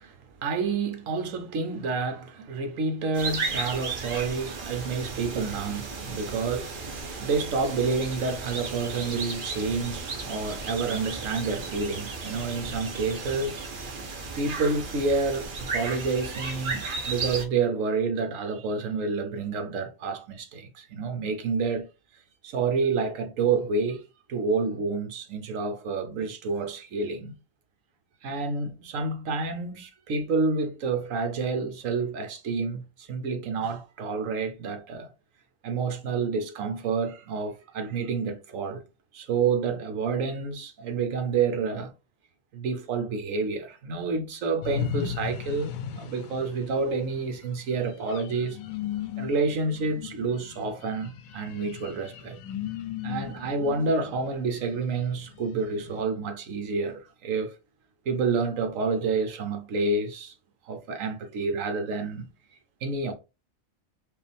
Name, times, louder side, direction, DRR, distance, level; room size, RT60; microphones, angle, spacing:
voice 1, 0.0-13.6 14.4-21.9 22.4-24.0 24.3-27.3 28.2-35.1 35.6-38.8 39.1-41.9 42.5-48.6 49.2-52.4 53.0-57.6 58.1-60.3 60.7-62.2 62.8-63.1, right 4 dB, 70° right, 1.2 m, -29 dB
sound 1, 3.1-17.5, right 4 dB, 45° right, 0.9 m, -35 dB
sound 2, 44.6-56.0, left 9 dB, 85° left, 1.0 m, -37 dB
4.9 x 2.4 x 3.3 m
omnidirectional pair, 1.4 m